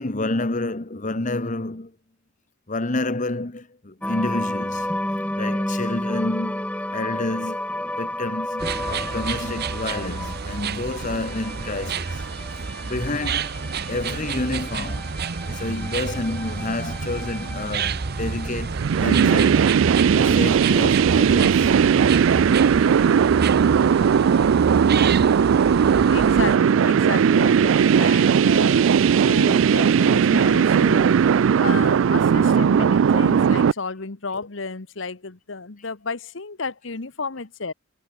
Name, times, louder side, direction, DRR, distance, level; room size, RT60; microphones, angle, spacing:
voice 1, 0.0-1.9 2.7-4.9 5.4-6.6 6.9-7.6 8.0-12.2 12.8-13.6 13.9-15.1 15.5-19.8 20.1-21.7 24.3-24.4, left 2 dB, 40° left, 1.3 m, -29 dB
sound 1, 4.0-18.5, left 1 dB, 5° left, 1.3 m, -32 dB
sound 2, 8.6-26.6, right 5 dB, 50° right, 0.8 m, -29 dB
sound 3, 18.7-33.7, right 7 dB, 70° right, 0.3 m, -18 dB
voice 2, 26.1-31.1 31.6-37.7, left 4 dB, 65° left, 1.2 m, -32 dB
head